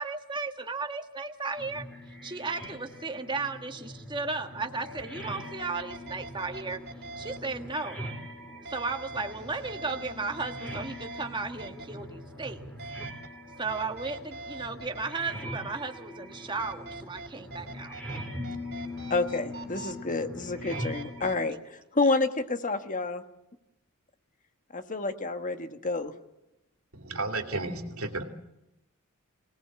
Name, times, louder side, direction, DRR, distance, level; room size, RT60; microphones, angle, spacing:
voice 1, 0.0-1.8 2.2-6.8 7.2-8.0 8.7-12.6 13.6-18.0, right 3 dB, 20° right, 4 dB, 1.6 m, -35 dB
sound 1, 1.6-21.4, equal, 5° left, 4.0 m, -42 dB
sound 2, 5.0-5.1 5.6-7.4 8.7-11.2 11.6-11.8 12.8-13.3 13.7-15.0 16.6-18.2 18.4-19.9 20.7-21.4, right 3 dB, 45° right, 3.3 m, -43 dB
voice 2, 19.1-21.6 21.9-23.2 24.7-26.1, left 3 dB, 35° left, 8 dB, 1.3 m, -29 dB
voice 3, 26.9-28.2, right 2 dB, 75° right, 5 dB, 2.6 m, -33 dB
25.0 x 18.5 x 7.5 m, 0.89 s
head